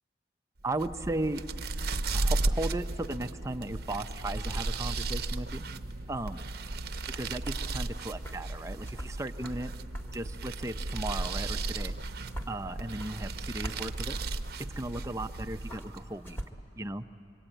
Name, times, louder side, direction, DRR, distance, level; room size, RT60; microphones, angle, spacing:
voice 1, 0.6-1.4 2.1-5.7 6.1-6.4 7.1-9.7 10.1-12.0 12.5-14.2 14.8-16.4 16.7-17.0, right 2 dB, 15° right, 8 dB, 0.6 m, -36 dB
sound 1, 0.6-16.1, right 2 dB, 60° right, 0.8 m, -35 dB
sound 2, 6.7-16.5, right 1 dB, 15° left, 1.6 m, -46 dB
26.0 x 24.0 x 9.0 m, 2.8 s
head